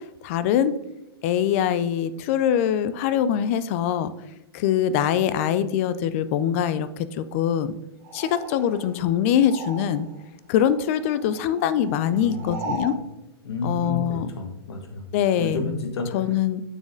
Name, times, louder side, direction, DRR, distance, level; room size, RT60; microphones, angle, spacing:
voice 1, 0.2-0.7 1.2-4.1 4.5-7.7 8.1-10.1 10.5-12.9 13.6-14.3 15.1-15.6 16.1-16.6, left 9 dB, 30° left, 14 dB, 0.4 m, -23 dB
sound 1, 8.0-10.3 10.5-13.0, right 2 dB, 35° right, 1.8 m, -38 dB
voice 2, 12.1-13.0 13.4-15.0 15.4-16.4, left 3 dB, 80° left, 4 dB, 1.6 m, -31 dB
6.5 x 6.4 x 3.7 m, 0.92 s
hypercardioid pair, 160°, 13 cm